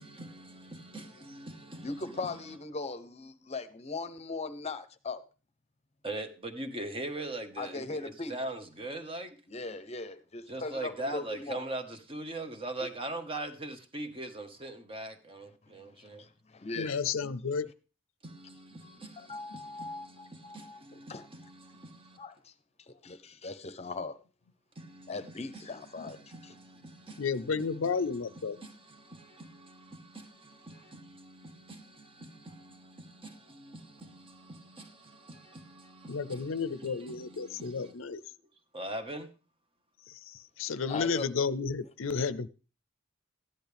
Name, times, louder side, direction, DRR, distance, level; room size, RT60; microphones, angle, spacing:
voice 1, 0.0-2.6 6.0-9.4 10.5-16.2 18.2-22.2 24.7-25.7 25.9-38.1 38.7-39.3, right 2 dB, 30° right, 1.4 m, -42 dB
voice 2, 1.8-5.2 7.6-8.4 9.5-11.6 12.8-12.9 15.6-15.7 16.0-17.1 18.8-21.3 22.2-22.5 22.8-24.2 25.1-26.2 26.4-26.6 40.9-41.3, left 3 dB, 35° left, 0.8 m, -39 dB
voice 3, 16.8-17.7 27.2-28.6 36.1-38.2 40.6-42.5, left 5 dB, 85° left, 0.6 m, -32 dB
14.0 x 10.5 x 3.4 m
head